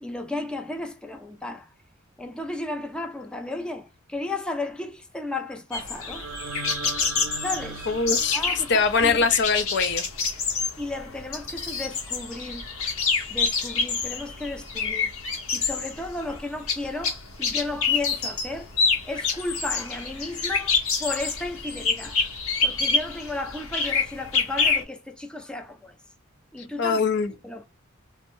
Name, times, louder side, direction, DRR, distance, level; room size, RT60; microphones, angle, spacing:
voice 1, 0.0-1.7 2.2-6.2 7.4-7.9 8.3-9.3 10.8-12.7 13.3-15.1 15.5-18.7 19.0-22.2 22.6-26.0 26.5-27.0 27.4-27.7, left 2 dB, 5° left, 0.4 m, -34 dB
sound 1, 5.7-24.8, left 4 dB, 85° left, 1.0 m, -27 dB
sound 2, 6.0-10.1, right 5 dB, 75° right, 0.5 m, -39 dB
voice 2, 7.9-8.4 8.7-10.0 26.8-27.3, left 4 dB, 55° left, 0.5 m, -22 dB
3.4 x 2.1 x 3.0 m
head